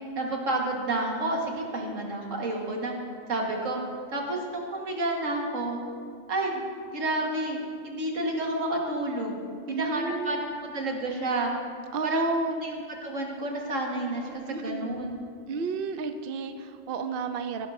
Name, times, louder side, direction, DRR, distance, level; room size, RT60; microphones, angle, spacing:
voice 1, 0.2-2.9 3.3-3.8 4.1-5.8 6.3-6.6 6.9-7.6 7.8-9.4 9.7-11.5 12.0-12.4 12.6-15.2, right 2 dB, 85° right, 0 dB, 1.9 m, -30 dB
voice 2, 9.7-10.5 11.9-12.6 14.5-14.9 15.5-17.7, right 4 dB, 55° right, 8 dB, 0.7 m, -31 dB
16.0 x 11.5 x 2.6 m, 2.2 s
omnidirectional pair, 1.3 m